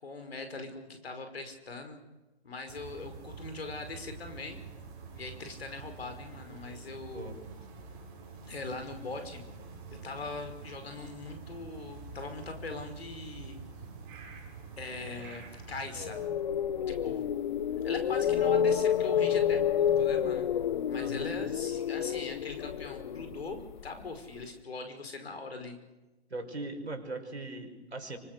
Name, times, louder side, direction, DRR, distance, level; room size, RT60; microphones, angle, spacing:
voice 1, 0.0-2.0 2.4-4.6 5.1-7.3 8.5-9.4 9.9-13.6 14.8-16.2 16.9-17.3 17.8-20.5 20.9-25.8, left 3 dB, 65° left, 7 dB, 5.4 m, -41 dB
sound 1, 2.7-16.3, right 4 dB, 25° right, 7.6 m, -47 dB
sound 2, 16.0-24.1, left 8 dB, 45° left, 0.8 m, -29 dB
voice 2, 20.9-21.3 26.3-28.2, right 2 dB, 80° right, 5 dB, 5.4 m, -39 dB
27.0 x 24.5 x 6.8 m, 1.1 s
figure-of-eight pair, 135°, 32 cm